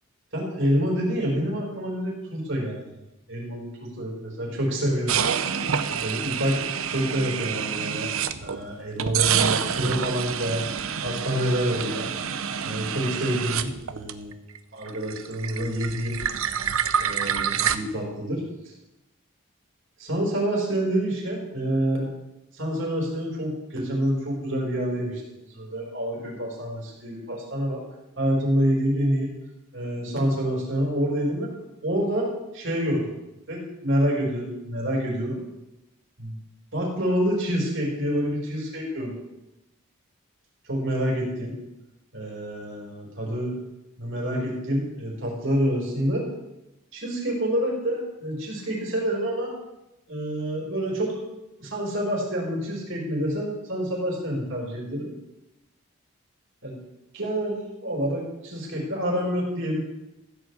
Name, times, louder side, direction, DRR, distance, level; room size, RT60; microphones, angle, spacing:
voice 1, 0.3-3.0 3.3-5.2 5.9-8.1 8.4-10.7 11.0-14.3 14.7-16.2 17.0-18.4 20.0-22.1 22.5-27.8 28.2-29.3 29.7-31.5 31.8-32.3 32.5-33.2 33.5-35.4 36.2-36.4 36.7-39.2 40.6-41.5 42.1-43.5 44.0-46.2 46.9-49.5 50.1-51.2 51.6-55.1 56.6-56.8 57.1-59.8, equal, 60° right, -2 dB, 4.6 m, -27 dB
sound 1, 5.1-8.6 9.0-14.6 14.8-17.8, right 8 dB, 75° right, 0.7 m, -27 dB
15.0 x 5.3 x 8.0 m, 0.94 s
head